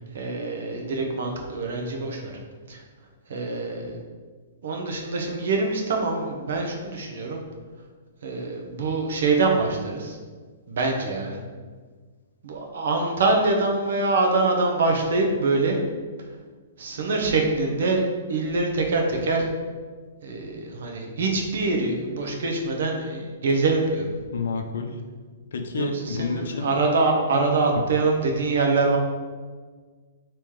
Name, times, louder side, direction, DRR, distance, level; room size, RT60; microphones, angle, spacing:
voice 1, 0.1-2.4 2.7-2.8 3.3-4.0 4.6-7.4 8.2-10.2 10.7-11.4 12.4-15.8 16.8-18.0 18.3-19.5 20.2-24.1 25.8-29.0, right 3 dB, 70° right, 2 dB, 0.8 m, -24 dB
voice 2, 24.3-25.0 25.5-26.7 27.7-27.8, left 4 dB, 75° left, 4 dB, 0.5 m, -29 dB
3.5 x 3.0 x 4.6 m, 1.5 s
hypercardioid pair, 125°, 0 cm